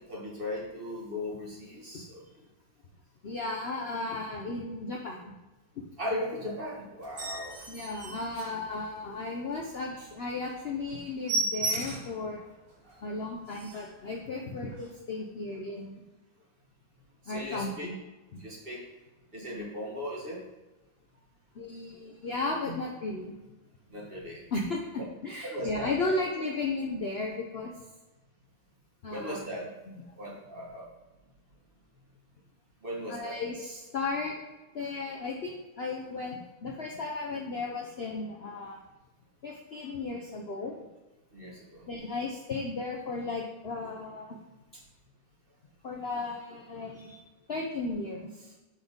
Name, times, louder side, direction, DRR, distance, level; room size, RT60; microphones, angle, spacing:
voice 1, 0.0-2.2 6.0-7.7 12.8-13.0 17.2-17.9 18.4-18.8 19.3-20.5 22.7-22.8 23.9-24.4 25.4-26.5 29.1-29.7 30.2-30.9 32.8-33.4 41.3-41.9 47.1-47.2, left 1 dB, 30° right, -4 dB, 1.7 m, -38 dB
voice 2, 3.2-5.3 7.7-12.5 13.0-16.0 17.3-18.0 18.3-18.4 21.5-23.3 24.5-27.7 29.0-29.5 33.1-34.4 34.7-38.8 39.4-40.8 41.9-44.4 45.8-47.1 47.5-48.5, left 3 dB, 75° left, 0 dB, 0.5 m, -35 dB
sound 1, 7.0-9.2 9.6-9.7 10.1-10.2 10.5-10.6 10.9-12.2 12.7-12.8 13.2-13.3 13.5-14.0 14.7-14.9, right 2 dB, 50° right, 2.4 m, -34 dB
6.2 x 4.9 x 5.2 m, 1.1 s
omnidirectional pair, 2.1 m